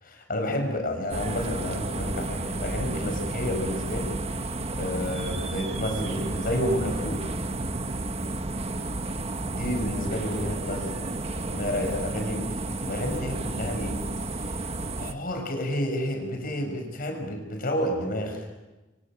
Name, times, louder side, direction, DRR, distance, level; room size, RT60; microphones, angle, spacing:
voice 1, 0.0-4.1 4.7-7.2 9.5-11.0 11.5-14.1 14.3-14.6 15.0-18.4, left 1 dB, 50° left, 3 dB, 5.9 m, -30 dB
sound 1, 1.1-15.1, right 2 dB, 35° right, 1.3 m, -32 dB
28.0 x 25.0 x 7.4 m, 1.1 s
head